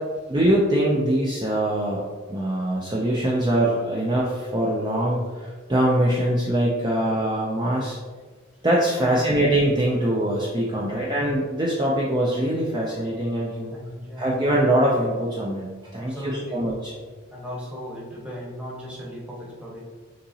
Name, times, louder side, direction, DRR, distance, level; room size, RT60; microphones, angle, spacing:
voice 1, 0.3-2.0 2.3-8.0 8.6-13.7 14.2-16.9, right 1 dB, 20° right, -5 dB, 0.4 m, -23 dB
voice 2, 9.0-9.5 10.8-11.3 13.7-14.4 16.0-16.7 17.3-19.8, left 1 dB, 5° right, -5 dB, 1.0 m, -37 dB
6.5 x 2.9 x 2.7 m, 1.4 s
head